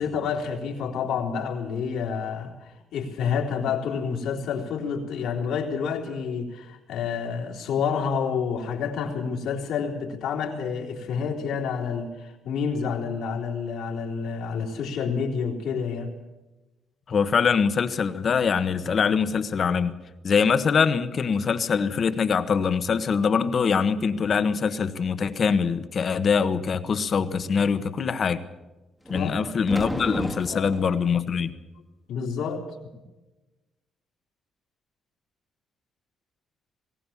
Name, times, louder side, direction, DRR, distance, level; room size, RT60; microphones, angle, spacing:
voice 1, 0.0-16.1 23.4-23.5 29.1-29.4 30.5-30.8 32.1-32.6, left 6 dB, 85° left, 1 dB, 3.5 m, -29 dB
voice 2, 17.1-19.9 20.2-28.4 29.1-31.5, left 6 dB, 50° left, 11 dB, 1.4 m, -23 dB
sound 1, 29.1-30.9, equal, 5° right, 1.8 m, -32 dB
20.5 x 18.0 x 7.3 m, 1.1 s
cardioid pair, 90°, 0 cm